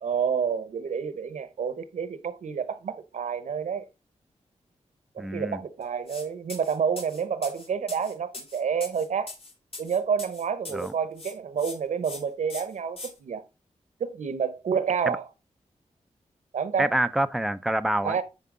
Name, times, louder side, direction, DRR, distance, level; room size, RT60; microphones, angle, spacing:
voice 1, 0.0-3.8 5.1-9.3 9.8-13.4 14.0-15.2 16.5-16.9 18.0-18.2, right 6 dB, 80° right, 0.9 m, -29 dB
voice 2, 5.2-5.6 10.7-10.9 15.1-15.2 16.8-18.2, right 1 dB, ahead, 0.4 m, -26 dB
sound 1, 6.1-6.2 6.5-10.9 11.2-11.8 12.0-12.2 12.5-13.1, left 3 dB, 50° left, 2.6 m, -40 dB
9.3 x 4.6 x 3.7 m
wide cardioid pair, 115°, 12 cm